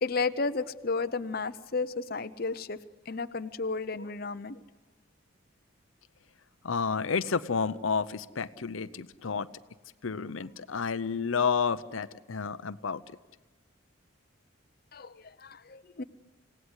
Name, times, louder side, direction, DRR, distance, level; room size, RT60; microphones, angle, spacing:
voice 1, 0.0-2.8 3.1-4.6 14.9-15.1 15.4-16.0, left 4 dB, 45° left, 0.7 m, -32 dB
voice 2, 6.6-9.5 10.0-13.2, left 5 dB, 80° left, 0.7 m, -30 dB
27.5 x 17.5 x 8.0 m
head